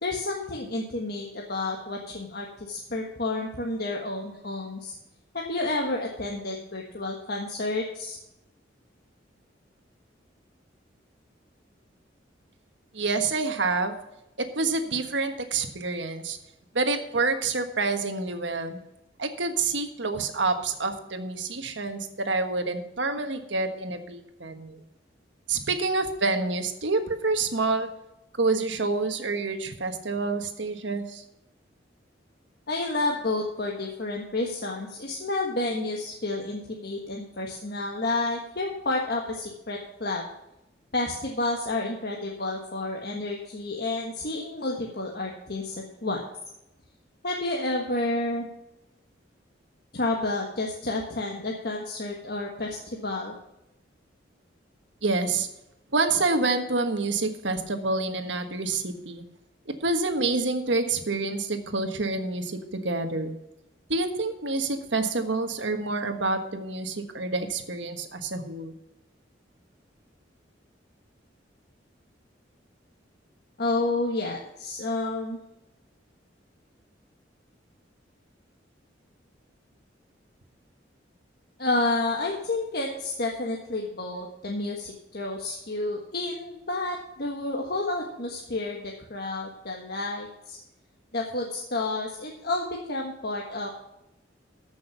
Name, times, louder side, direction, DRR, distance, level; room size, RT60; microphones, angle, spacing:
voice 1, 0.0-4.9 5.3-8.2 32.7-40.2 40.9-46.2 47.2-48.5 49.9-53.3 73.6-75.4 81.6-90.6 91.1-93.8, left 2 dB, 55° left, -1 dB, 1.5 m, -30 dB
voice 2, 12.9-13.9 14.5-16.4 16.7-18.8 19.2-22.0 22.2-24.8 25.5-27.9 28.4-31.2 55.0-55.5 55.9-59.2 59.7-63.3 63.9-68.7, right 3 dB, 75° right, 7 dB, 1.4 m, -27 dB
14.0 x 6.3 x 5.8 m, 0.87 s
head